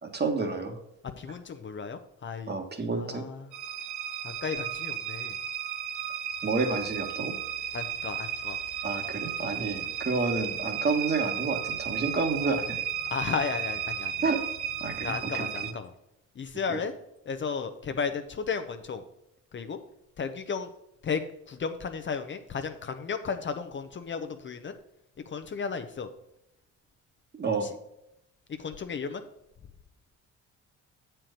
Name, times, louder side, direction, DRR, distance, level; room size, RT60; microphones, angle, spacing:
voice 1, 0.0-0.8 2.5-3.3 6.4-7.3 8.8-12.8 14.2-14.4 14.8-15.7 16.7-16.8 27.3-27.7, right 4 dB, 35° right, 5 dB, 1.4 m, -30 dB
voice 2, 1.2-2.5 3.0-3.5 4.2-5.3 7.7-8.6 13.1-14.1 15.0-15.9 16.4-16.9 17.3-19.0 19.5-19.8 20.2-20.7 21.0-21.2 21.5-24.8 25.3-26.1 27.6-27.7 28.6-29.2, left 5 dB, 40° left, 8 dB, 0.7 m, -34 dB
sound 1, 3.5-15.7, right 9 dB, 75° right, 0.8 m, -34 dB
7.6 x 4.5 x 6.4 m, 0.84 s
cardioid pair, 90°, 30 cm